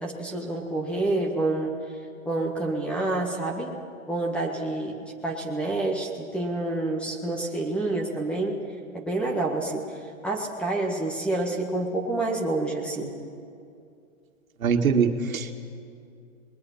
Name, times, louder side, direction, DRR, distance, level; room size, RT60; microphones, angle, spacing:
voice 1, 0.0-1.7 2.2-3.8 4.1-8.6 8.9-9.8 10.2-13.1, right 2 dB, 5° left, 0 dB, 1.6 m, -28 dB
voice 2, 14.6-15.6, right 6 dB, 80° right, 5 dB, 2.0 m, -23 dB
28.0 x 21.0 x 5.7 m, 2.5 s
hypercardioid pair, 155°, 41 cm